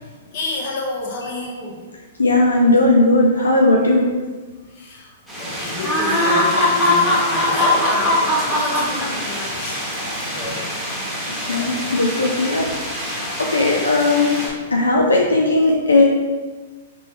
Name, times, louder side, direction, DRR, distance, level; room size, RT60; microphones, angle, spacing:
voice 1, 0.3-1.8 4.7-5.1 5.4-9.8 10.3-10.6, left 2 dB, 45° left, -2 dB, 1.1 m, -29 dB
voice 2, 2.2-4.0 11.5-12.7 13.4-14.3 14.7-16.0, left 2 dB, 85° left, -1 dB, 0.5 m, -16 dB
sound 1, 5.3-14.5, left 1 dB, ahead, 1.2 m, -22 dB
4.1 x 3.5 x 3.2 m, 1.3 s
figure-of-eight pair, 110°, 0 cm